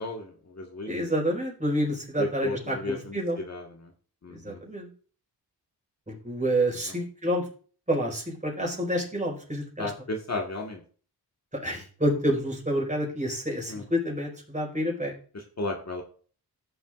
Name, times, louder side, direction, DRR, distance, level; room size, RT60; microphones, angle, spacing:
voice 1, 0.0-1.0 2.2-3.9 4.2-4.6 6.9-7.0 9.8-10.8 13.7-13.8 15.3-16.0, left 2 dB, 40° left, 1 dB, 1.6 m, -34 dB
voice 2, 0.9-3.4 4.3-4.9 6.1-7.5 7.9-9.9 11.5-15.1, equal, 20° right, -2 dB, 4.7 m, -28 dB
14.0 x 7.1 x 2.5 m, 0.42 s
cardioid pair, 60°, 39 cm